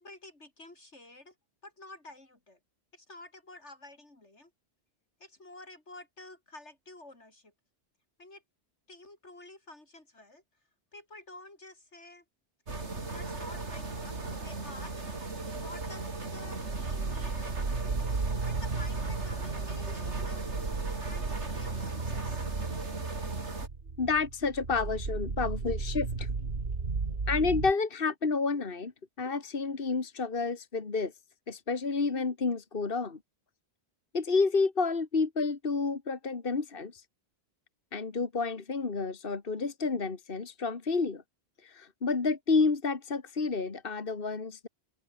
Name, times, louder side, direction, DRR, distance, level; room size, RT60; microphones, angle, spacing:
voice 1, 0.0-1.3 1.6-2.6 2.9-4.5 5.2-7.5 8.2-8.4 8.9-10.4 10.9-12.2 12.9-15.0 15.5-17.9 18.5-20.4 21.0-22.5, left 2 dB, 90° left, 5.5 m, -50 dB
sound 1, 12.7-23.7, right 3 dB, 80° right, 3.5 m, -38 dB
sound 2, 16.6-27.7, right 4 dB, 60° right, 2.3 m, -35 dB
voice 2, 24.0-26.3 27.3-28.9 29.2-31.1 31.5-33.2 34.1-37.0 37.9-41.2 41.6-44.7, left 4 dB, 55° left, 2.0 m, -30 dB
open air
omnidirectional pair, 1.1 m